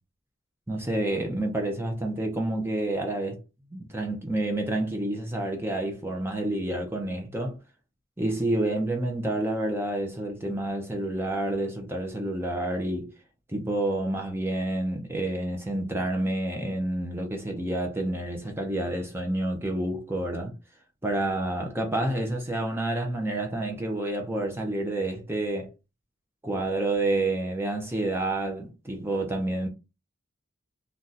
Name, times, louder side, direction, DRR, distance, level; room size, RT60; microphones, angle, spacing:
voice 1, 0.7-3.4 3.7-7.6 8.2-13.1 13.5-20.5 21.0-25.7 26.4-29.7, right 1 dB, 10° right, 0.5 m, -29 dB
2.6 x 2.2 x 3.9 m
head